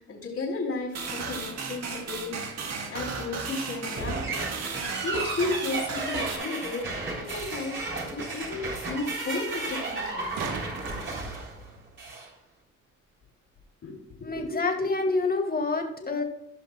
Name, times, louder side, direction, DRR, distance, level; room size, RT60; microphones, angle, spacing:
voice 1, 0.0-4.5 5.0-7.8 8.1-10.3 13.8-14.3, left 3 dB, 50° left, -7 dB, 3.2 m, -34 dB
sound 1, 0.9-6.4, right 4 dB, 60° right, 1.8 m, -35 dB
sound 2, 3.9-12.3, right 2 dB, 40° right, 3.7 m, -34 dB
sound 3, 10.4-12.1 15.0-15.1, right 5 dB, 90° right, 1.3 m, -39 dB
voice 2, 14.2-16.2, left 3 dB, 30° left, 3 dB, 2.1 m, -27 dB
17.0 x 5.8 x 2.3 m, 0.74 s
cardioid pair, 90°, 30 cm